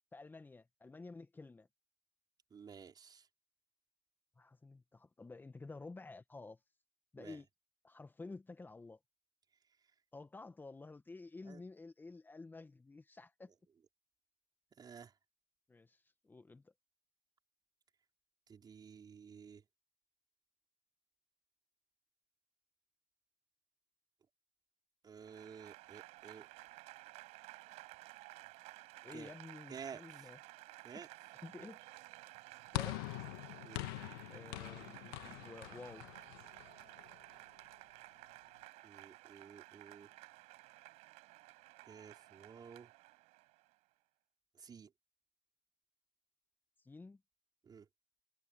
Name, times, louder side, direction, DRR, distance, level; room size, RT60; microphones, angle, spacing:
voice 1, 0.1-1.7 4.4-6.6 7.1-7.5 7.8-9.0 10.1-13.5 15.7-16.7 29.0-30.4 31.4-31.8 32.7-33.1 34.3-36.0 46.8-47.2, left 3 dB, 15° left, 1.4 m, -51 dB
voice 2, 2.5-3.3 7.2-7.4 11.5-11.6 14.8-15.1 18.5-19.6 25.0-26.5 29.1-29.3 29.7-30.3 30.8-31.1 33.6-33.9 38.8-40.1 41.8-42.9 44.6-44.9 47.6-47.9, right 6 dB, 35° right, 5.1 m, -52 dB
Applause / Crowd, 25.2-43.7, right 21 dB, 65° right, 5.8 m, -55 dB
sound 1, 32.7-37.2, left 21 dB, 75° left, 1.8 m, -44 dB
hypercardioid pair, 75°, 12 cm